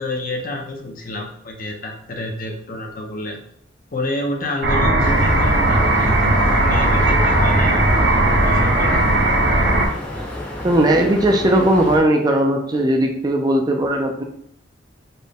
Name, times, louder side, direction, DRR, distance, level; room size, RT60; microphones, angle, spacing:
voice 1, 0.0-3.4 3.9-9.0, left 2 dB, 45° left, 2 dB, 0.6 m, -29 dB
sound 1, 4.6-9.9, right 1 dB, 60° right, 0.7 m, -17 dB
sound 2, 5.0-12.0, left 1 dB, 10° left, 0.8 m, -30 dB
voice 2, 10.6-14.2, right 1 dB, 20° right, 2 dB, 0.3 m, -17 dB
4.1 x 2.1 x 3.4 m, 0.70 s
head